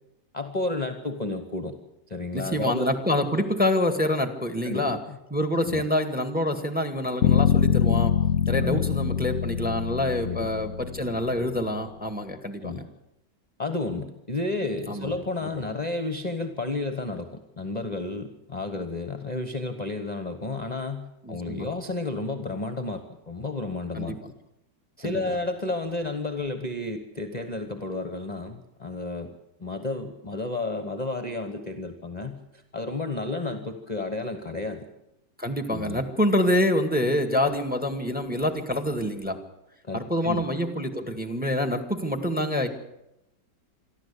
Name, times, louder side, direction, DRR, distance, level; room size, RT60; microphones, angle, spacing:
voice 1, 0.3-1.8 2.1-3.0 4.6-5.2 5.6-5.8 8.6-8.8 10.2-10.5 12.6-12.9 13.6-24.2 25.0-29.3 29.6-34.9 35.7-36.0 39.8-40.5, left 2 dB, 25° left, 8 dB, 1.3 m, -32 dB
voice 2, 2.3-5.0 5.3-8.2 8.5-12.8 14.9-15.1 15.4-15.5 21.2-21.7 23.9-24.2 25.0-25.2 35.4-39.4 39.9-42.7, left 1 dB, 5° right, 8 dB, 1.8 m, -26 dB
sound 1, 7.2-11.2, left 8 dB, 60° left, 1.2 m, -24 dB
27.0 x 12.0 x 8.5 m, 0.88 s
omnidirectional pair, 1.8 m